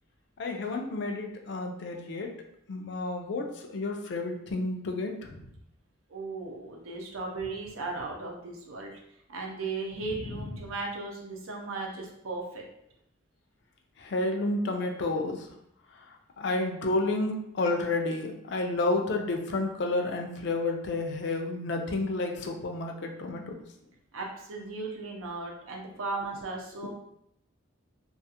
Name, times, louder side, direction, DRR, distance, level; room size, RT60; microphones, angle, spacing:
voice 1, 0.4-2.3 2.7-5.4 14.0-15.5 16.4-23.4, left 2 dB, 55° left, 3 dB, 0.4 m, -30 dB
voice 2, 6.1-9.0 9.3-12.6 24.1-27.0, right 3 dB, 90° right, 0 dB, 0.6 m, -36 dB
2.4 x 2.3 x 2.7 m, 0.76 s
head